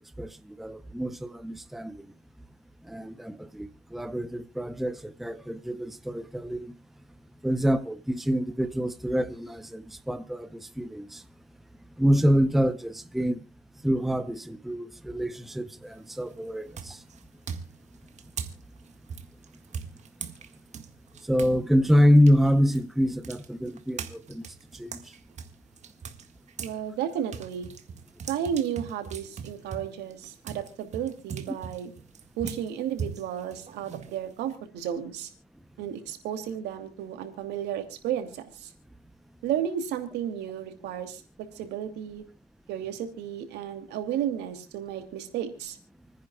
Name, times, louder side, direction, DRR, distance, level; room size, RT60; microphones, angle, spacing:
voice 1, 0.2-2.1 2.8-6.8 7.4-11.2 12.0-13.5 13.8-17.0 21.2-24.4 24.7-25.1, equal, ahead, 0.7 m, -26 dB
sound 1, 15.8-16.2 16.7-21.6 21.9-26.8 27.1-34.5, right 6 dB, 45° right, 1.8 m, -40 dB
voice 2, 26.6-27.7 28.3-31.9 32.4-35.3 35.8-38.7 39.4-41.2 41.5-42.2 42.7-45.8, right 9 dB, 80° right, 2.8 m, -33 dB
29.0 x 10.0 x 2.3 m
cardioid pair, 110°, 17 cm